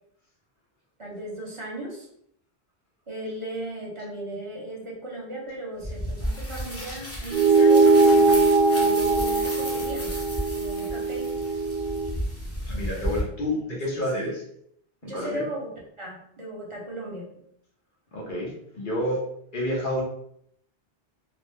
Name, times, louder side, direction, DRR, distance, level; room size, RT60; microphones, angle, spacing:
voice 1, 1.0-2.1 3.1-10.1 10.5-11.4 13.5-13.6 13.9-14.1 15.0-17.3, right 1 dB, 35° right, -3 dB, 0.8 m, -36 dB
sound 1, 5.8-13.2, equal, 15° left, 0.6 m, -34 dB
sound 2, 7.3-12.1, right 3 dB, 75° right, 0.8 m, -20 dB
voice 2, 12.7-14.4 15.0-15.4 18.1-19.2 19.5-20.0, left 1 dB, 55° left, -4 dB, 1.0 m, -29 dB
2.9 x 2.0 x 3.4 m, 0.71 s
omnidirectional pair, 1.1 m